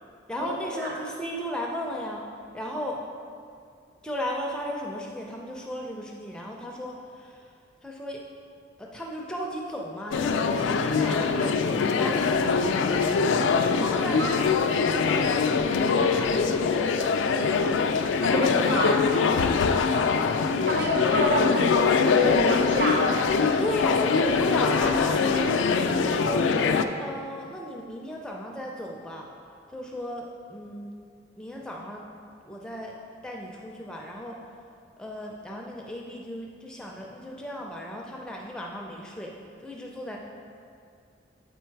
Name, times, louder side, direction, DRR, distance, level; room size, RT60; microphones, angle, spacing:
voice 1, 0.3-2.2 2.5-3.0 4.0-7.5 7.8-8.2 8.8-19.1 19.9-20.2 23.6-29.3 29.7-31.0 31.4-32.0 32.5-33.0 33.2-34.4 35.0-39.4 39.6-40.2, equal, 5° left, -1 dB, 0.4 m, -36 dB
sound 1, 10.1-26.8, left 5 dB, 80° left, 0.3 m, -23 dB
voice 2, 18.2-19.0 20.7-23.1, equal, 60° right, -1 dB, 1.1 m, -27 dB
8.5 x 3.9 x 4.6 m, 2.3 s
head